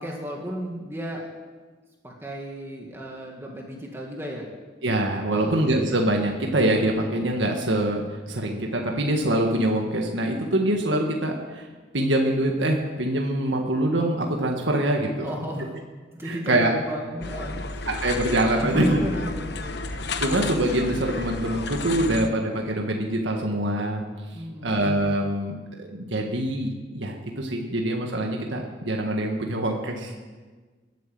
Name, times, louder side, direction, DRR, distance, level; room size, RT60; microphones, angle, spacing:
voice 1, 0.0-1.3 2.0-4.5 5.3-5.5 15.2-15.8 16.1-17.9 18.6-19.8 20.1-20.3 24.3-24.9, equal, 15° right, -1 dB, 1.9 m, -33 dB
voice 2, 4.8-8.0 8.3-11.7 11.9-15.3 16.2-16.7 18.0-19.0 20.2-24.0 24.6-30.1, right 1 dB, 75° right, 1 dB, 1.7 m, -24 dB
sound 1, 17.2-22.3, left 3 dB, 60° left, 1.0 m, -32 dB
20.5 x 9.3 x 7.7 m, 1.4 s
head